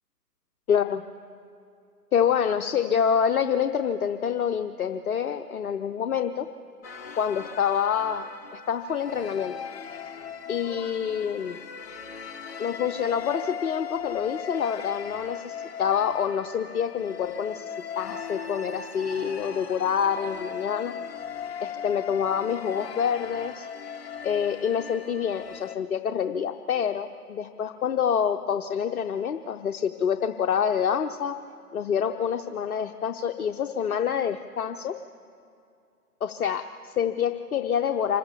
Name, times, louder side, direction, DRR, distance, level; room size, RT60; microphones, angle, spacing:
voice 1, 0.7-1.0 2.1-6.5 7.2-9.6 10.5-11.6 12.6-20.9 21.6-23.7 24.2-31.3 31.7-34.9 36.2-38.2, left 8 dB, 60° left, 7 dB, 0.8 m, -27 dB
sound 1, 6.8-25.7, left 7 dB, 40° left, 1.0 m, -38 dB
25.5 x 14.5 x 7.1 m, 2.5 s
figure-of-eight pair, 135°, 48 cm